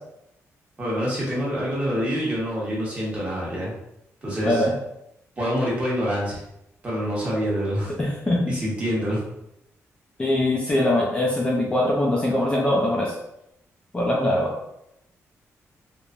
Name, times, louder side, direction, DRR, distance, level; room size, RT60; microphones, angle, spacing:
voice 1, 0.8-3.7 4.2-4.6 5.4-6.4 6.8-7.9 8.5-9.2, equal, 25° right, -6 dB, 1.0 m, -26 dB
voice 2, 8.0-8.4 10.2-13.1 13.9-14.5, left 1 dB, 20° left, -3 dB, 0.4 m, -22 dB
3.1 x 2.1 x 2.5 m, 0.81 s
wide cardioid pair, 140°, 5 cm